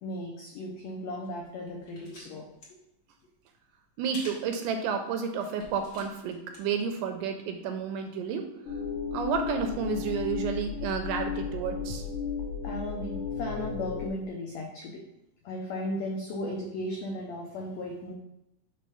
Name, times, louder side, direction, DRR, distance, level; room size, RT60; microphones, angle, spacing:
voice 1, 0.0-2.4 12.6-15.0 15.4-18.1, left 1 dB, 85° left, 0 dB, 1.5 m, -36 dB
sound 1, 1.2-2.2 2.5-2.7 4.1-4.5 5.0-5.1 5.5-6.6 6.9-7.0, left 1 dB, 50° left, 1.2 m, -47 dB
voice 2, 4.0-8.5 9.1-12.0, right 6 dB, 80° right, 6 dB, 2.0 m, -31 dB
sound 2, 8.7-14.1, left 6 dB, 65° left, 1.2 m, -34 dB
5.4 x 3.3 x 5.5 m, 0.88 s
omnidirectional pair, 3.9 m